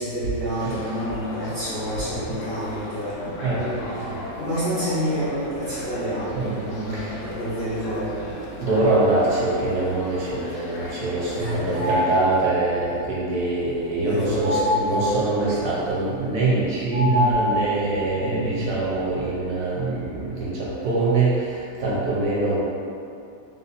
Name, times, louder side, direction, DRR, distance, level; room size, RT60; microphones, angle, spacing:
voice 1, 0.0-3.9 4.4-8.3 11.3-12.0 14.0-15.0 17.0-17.3 18.2-18.7, equal, 45° left, -13 dB, 0.8 m, -29 dB
sound 1, 0.6-12.2, left 2 dB, 80° left, 1.2 m, -37 dB
voice 2, 8.6-22.6, right 2 dB, 65° right, -6 dB, 1.1 m, -24 dB
sound 2, 11.7-12.7 14.4-15.4 16.9-18.0, left 1 dB, 90° right, 0.6 m, -24 dB
3.5 x 2.6 x 4.0 m, 2.5 s
omnidirectional pair, 2.0 m